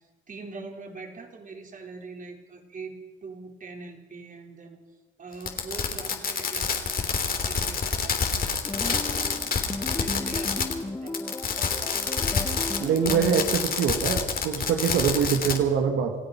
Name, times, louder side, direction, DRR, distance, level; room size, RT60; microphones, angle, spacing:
voice 1, 0.3-4.8 5.2-9.3 10.0-11.3, right 3 dB, 40° right, 2 dB, 4.2 m, -43 dB
Fireworks, 5.4-10.8 11.1-15.6, left 5 dB, 45° left, 3.1 m, -27 dB
sound 1, 8.6-15.0, left 2 dB, 15° left, 0.8 m, -36 dB
voice 2, 12.8-16.1, right 7 dB, 85° right, 4 dB, 1.9 m, -24 dB
28.0 x 15.5 x 5.9 m, 1.3 s
cardioid pair, 90°, 20 cm